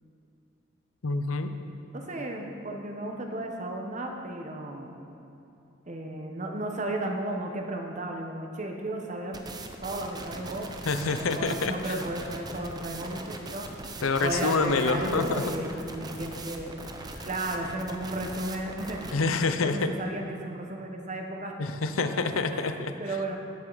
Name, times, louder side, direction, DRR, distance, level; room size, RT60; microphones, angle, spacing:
voice 1, 1.0-1.5 10.9-12.0 14.0-15.4 17.1-17.3 19.1-19.9 21.6-22.9, left 4 dB, 90° left, 8 dB, 0.7 m, -27 dB
voice 2, 1.9-5.0 5.9-9.4 9.8-10.7 11.1-13.9 14.2-16.7 17.3-19.0 19.4-21.5 22.0-22.1 22.5-23.4, right 1 dB, 35° right, 2 dB, 1.0 m, -34 dB
sound 1, 9.3-19.1, right 2 dB, 20° right, 0.6 m, -40 dB
16.5 x 7.8 x 4.0 m, 2.8 s
head